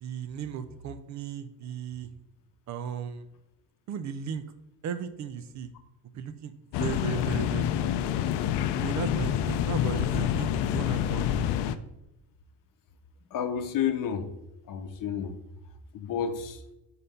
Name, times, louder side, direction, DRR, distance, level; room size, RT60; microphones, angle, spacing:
voice 1, 0.0-2.1 2.7-3.3 3.9-4.4 4.8-5.7 6.1-6.5 6.8-8.2 8.8-11.3, right 7 dB, 45° right, 11 dB, 0.5 m, -36 dB
sound 1, 6.7-11.8, left 10 dB, 85° left, 0.5 m, -27 dB
voice 2, 13.3-14.3 14.7-15.4 15.9-16.6, left 8 dB, 55° left, 8 dB, 0.8 m, -30 dB
5.4 x 4.0 x 5.6 m, 0.90 s
cardioid pair, 160°, 39 cm